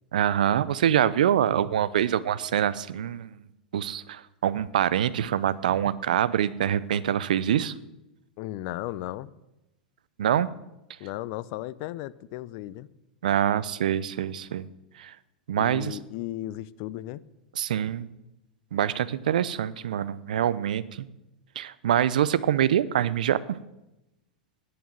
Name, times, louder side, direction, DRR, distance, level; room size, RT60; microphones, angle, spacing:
voice 1, 0.1-3.4 3.7-7.7 10.2-10.5 13.2-14.7 15.0-15.1 15.5-16.0 17.6-18.1 18.7-21.1 21.6-23.6, right 10 dB, 70° right, 17 dB, 0.7 m, -25 dB
voice 2, 8.4-9.3 11.0-12.9 15.6-17.2, left 15 dB, 50° left, 18 dB, 0.6 m, -35 dB
11.0 x 8.8 x 9.1 m, 0.94 s
hypercardioid pair, 95°, 4 cm